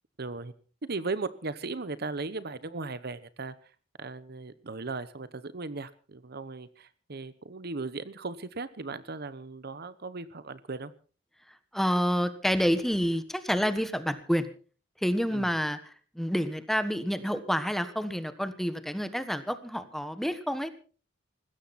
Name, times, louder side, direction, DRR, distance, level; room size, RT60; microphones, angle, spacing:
voice 1, 0.2-0.5 0.8-3.7 4.0-10.9 15.3-15.5, right 3 dB, 55° right, 15 dB, 1.0 m, -37 dB
voice 2, 11.7-14.5 15.0-15.8 16.1-20.7, equal, ahead, 11 dB, 1.4 m, -28 dB
20.5 x 15.5 x 4.2 m, 0.39 s
head